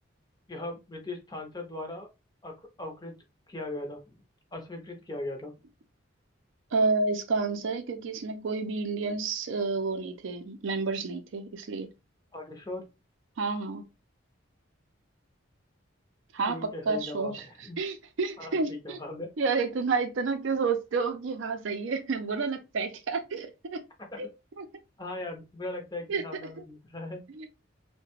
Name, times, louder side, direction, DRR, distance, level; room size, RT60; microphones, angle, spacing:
voice 1, 0.5-2.1 2.4-3.2 3.5-4.1 4.5-5.5 12.3-12.9 16.5-17.8 18.4-19.3 24.0-24.3 25.0-27.3, left 2 dB, 20° left, 0.5 m, -39 dB
voice 2, 6.7-11.9 13.4-13.8 16.3-17.4 17.8-19.0 19.4-23.8 24.2-24.3 24.6-24.7 26.1-26.2 27.4-27.5, right 4 dB, 70° right, 0.5 m, -30 dB
2.8 x 2.1 x 2.9 m
head